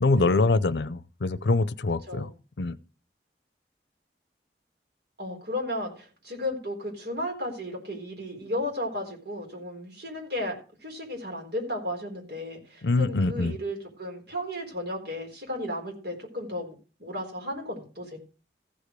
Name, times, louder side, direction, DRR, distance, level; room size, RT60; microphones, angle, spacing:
voice 1, 0.0-2.3 2.6-2.8 12.8-13.6, left 3 dB, 80° left, 0.6 m, -24 dB
voice 2, 5.2-10.5 10.8-16.7 17.0-18.2, left 1 dB, 70° right, 4.2 m, -34 dB
15.0 x 5.0 x 6.6 m
head